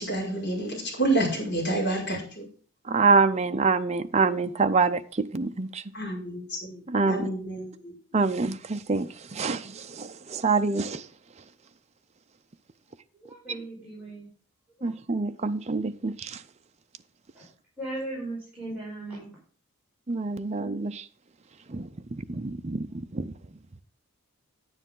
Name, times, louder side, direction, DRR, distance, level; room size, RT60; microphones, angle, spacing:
voice 1, 0.0-2.5 5.9-7.9, right 2 dB, 50° left, -3 dB, 5.6 m, -29 dB
voice 2, 2.9-5.8 6.9-7.2 8.1-11.0 14.8-16.4 20.1-21.0 21.7-22.9 23.1-23.3, right 4 dB, 30° right, 8 dB, 0.5 m, -26 dB
voice 3, 13.1-14.3 14.8-14.9 17.3-17.4 17.8-19.3, right 2 dB, 5° right, -8 dB, 4.8 m, -37 dB
9.9 x 9.8 x 3.8 m, 0.44 s
head